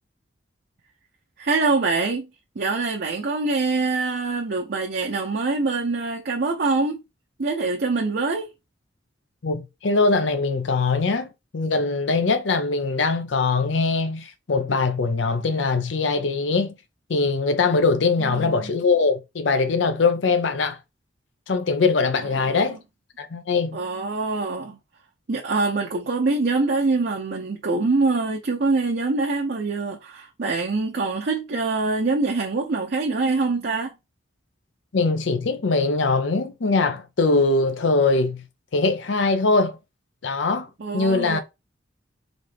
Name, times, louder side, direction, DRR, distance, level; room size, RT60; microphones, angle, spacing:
voice 1, 1.4-2.3 2.6-7.0 7.4-8.5 18.2-18.7 22.4-22.8 23.7-24.8 25.3-33.9 40.8-41.4, right 3 dB, 55° right, 0.6 m, -24 dB
voice 2, 9.4-16.7 17.1-20.8 21.5-22.8 23.2-23.8 34.9-38.4 38.7-39.8 40.2-40.7 40.9-41.4, left 3 dB, 70° left, 0.6 m, -22 dB
4.1 x 3.1 x 3.4 m
head